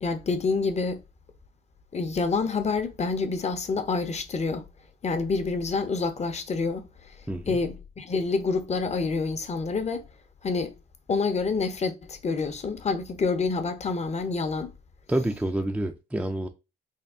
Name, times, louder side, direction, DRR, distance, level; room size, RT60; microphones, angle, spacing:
voice 1, 0.0-1.0 1.9-4.6 5.0-6.8 7.5-10.0 10.4-10.7 11.1-14.7, left 4 dB, 35° left, 0.7 m, -27 dB
voice 2, 15.1-16.5, right 1 dB, 5° right, 0.4 m, -28 dB
3.5 x 2.3 x 3.5 m
cardioid pair, 90°, 20 cm